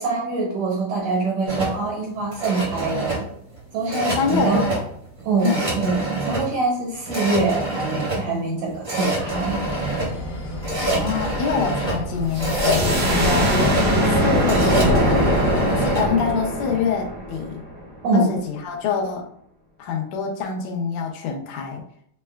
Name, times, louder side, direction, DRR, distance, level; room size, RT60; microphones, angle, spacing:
voice 1, 0.0-3.3 3.7-4.7 5.2-9.6 18.0-18.3, right 3 dB, 70° right, -3 dB, 1.7 m, -24 dB
sound 1, 1.5-16.1, right 1 dB, 40° right, 0.6 m, -27 dB
voice 2, 4.2-4.6 5.4-5.7 10.8-15.4 15.7-17.6 18.1-19.3 19.8-21.8, left 5 dB, 80° left, 1 dB, 2.2 m, -25 dB
sound 2, 9.2-15.7, left 1 dB, 65° left, 0.8 m, -32 dB
sound 3, 12.3-17.9, equal, 90° right, 0.7 m, -21 dB
6.4 x 2.2 x 2.3 m, 0.65 s
omnidirectional pair, 3.6 m